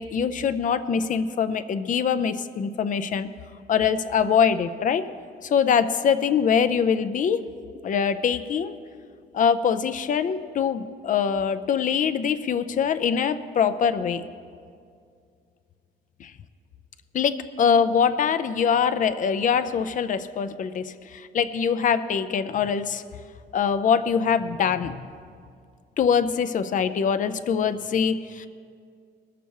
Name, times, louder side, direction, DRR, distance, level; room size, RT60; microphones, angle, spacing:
voice 1, 0.0-3.3 3.7-5.1 5.4-7.5 7.8-8.8 9.3-14.3 16.2-16.3 17.1-23.0 23.5-25.1 26.0-28.5, left 7 dB, 45° left, 12 dB, 0.5 m, -23 dB
20.5 x 6.8 x 4.7 m, 2.2 s
cardioid pair, 145°, 18 cm